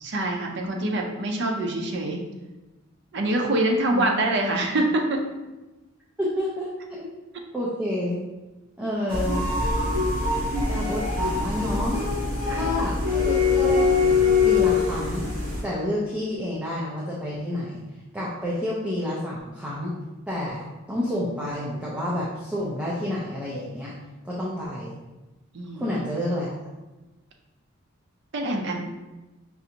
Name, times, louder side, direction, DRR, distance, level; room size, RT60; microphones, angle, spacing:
voice 1, 0.0-2.2 3.1-5.2 12.5-12.7 25.5-26.0 28.3-28.8, right 1 dB, 55° right, 1 dB, 0.5 m, -25 dB
voice 2, 6.2-6.7 7.0-7.1 7.5-8.2 8.8-9.4 10.7-12.0 12.5-13.9 14.4-15.3 15.6-17.8 18.1-19.9 20.3-23.9 24.2-25.0 25.7-26.6, left 1 dB, 5° right, -7 dB, 0.5 m, -29 dB
sound 1, 9.1-15.6, left 4 dB, 35° right, 0.9 m, -23 dB
5.4 x 2.5 x 2.8 m, 1.1 s
head